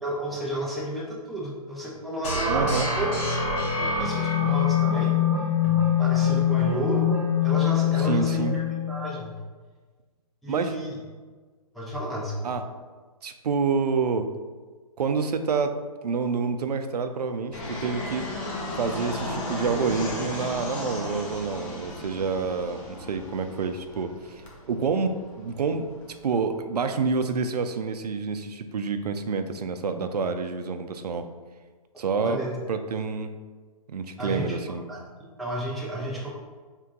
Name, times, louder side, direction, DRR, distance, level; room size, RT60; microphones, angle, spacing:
voice 1, 0.0-3.1 3.8-5.1 5.6-7.1 7.4-9.4 10.4-11.0 11.7-12.6 31.9-32.5 34.2-34.6 34.9-35.0 35.4-36.3, right 1 dB, ahead, -6 dB, 0.5 m, -32 dB
sound 1, 2.2-9.2, left 7 dB, 30° left, 1.3 m, -24 dB
voice 2, 2.5-2.9 8.0-8.6 10.5-10.7 12.4-12.6 13.2-14.3 15.0-15.8 16.0-18.3 18.7-24.4 24.7-25.9 26.2-31.3 32.0-32.4 32.7-33.4 33.9-34.8, right 5 dB, 90° right, 8 dB, 0.4 m, -28 dB
Fixed-wing aircraft airplane, 17.5-26.6, left 1 dB, 50° left, 1.1 m, -35 dB
4.4 x 3.7 x 2.5 m, 1.4 s
hypercardioid pair, 140°, 20 cm